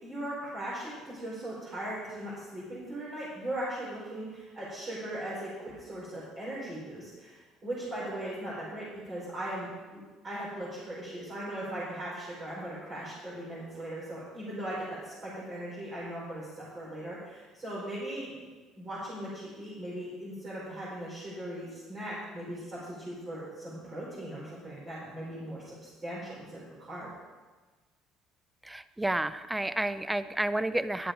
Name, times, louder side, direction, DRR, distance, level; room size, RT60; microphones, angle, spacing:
voice 1, 0.0-10.0 10.2-18.5 18.8-27.1, right 1 dB, 30° right, -8 dB, 4.2 m, -39 dB
voice 2, 28.6-31.1, right 1 dB, 10° right, 14 dB, 0.4 m, -30 dB
11.5 x 7.7 x 5.1 m, 1.3 s
cardioid pair, 110°, 0 cm